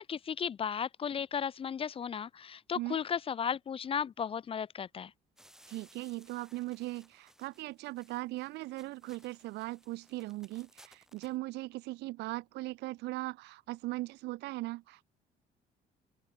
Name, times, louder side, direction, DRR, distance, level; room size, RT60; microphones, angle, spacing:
voice 1, 0.0-5.1, left 7 dB, 35° left, 0.6 m, -35 dB
sound 1, 5.4-11.4, equal, 5° right, 7.4 m, -62 dB
voice 2, 5.7-15.1, right 19 dB, 85° right, 1.6 m, -39 dB
open air
cardioid pair, 110°, 17 cm